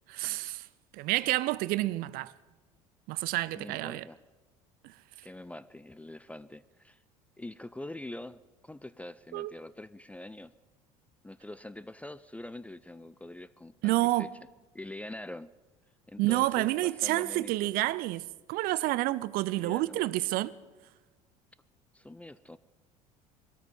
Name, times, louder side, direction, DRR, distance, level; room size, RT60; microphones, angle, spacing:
voice 1, 0.1-0.6 0.9-2.3 3.1-4.0 9.3-9.5 13.8-14.3 16.2-20.5, right 18 dB, 55° right, 0.5 m, -29 dB
voice 2, 3.5-4.2 5.2-7.0 7.4-10.5 11.2-14.3 14.7-15.5 16.1-17.7 19.5-20.0 21.9-22.6, left 1 dB, 5° left, 0.4 m, -44 dB
20.0 x 13.0 x 5.4 m
figure-of-eight pair, 65°, 19 cm